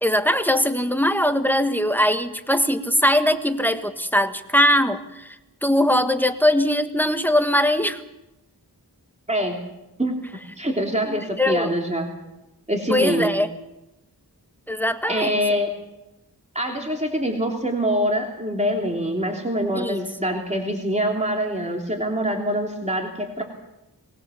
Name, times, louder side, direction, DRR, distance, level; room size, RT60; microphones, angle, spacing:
voice 1, 0.0-5.3 5.6-8.0 11.0-11.7 12.9-13.5 14.7-15.4 19.7-20.1, left 1 dB, 5° left, 8 dB, 1.5 m, -21 dB
voice 2, 9.3-9.6 10.0-10.1 10.6-12.1 12.7-13.3 15.1-15.7 16.5-23.4, equal, 15° right, 1 dB, 3.2 m, -24 dB
23.0 x 20.0 x 7.1 m, 0.95 s
wide cardioid pair, 45°, 40 cm